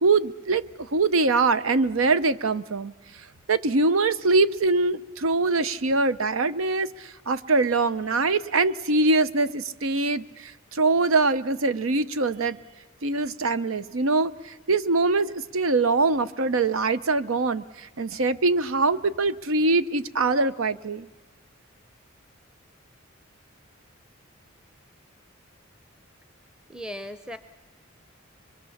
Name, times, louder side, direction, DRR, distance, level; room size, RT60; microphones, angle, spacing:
voice 1, 0.0-12.6 13.0-21.1, right 3 dB, 85° right, 14 dB, 0.8 m, -23 dB
voice 2, 26.7-27.4, equal, 5° right, 10 dB, 0.7 m, -37 dB
25.0 x 22.5 x 7.2 m, 1.2 s
head